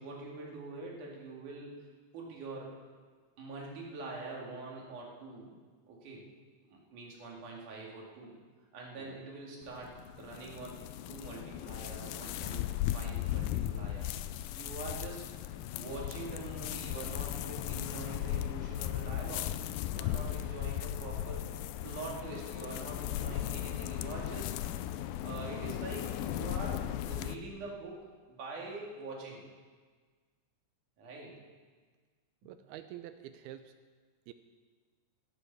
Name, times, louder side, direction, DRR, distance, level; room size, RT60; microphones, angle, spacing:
voice 1, 0.0-1.7 2.1-2.8 3.4-5.5 5.9-6.3 6.7-8.4 8.7-14.1 14.5-15.3 15.7-19.6 19.9-21.4 21.8-24.5 25.2-29.4 31.0-31.4, right 3 dB, 55° right, -2 dB, 3.5 m, -44 dB
sound 1, 9.6-27.4, left 12 dB, 85° left, 2.2 m, -37 dB
voice 2, 20.1-20.4 32.4-33.8 34.3-34.4, right 12 dB, 80° right, 10 dB, 2.4 m, -48 dB
17.0 x 8.2 x 6.8 m, 1.5 s
omnidirectional pair, 4.6 m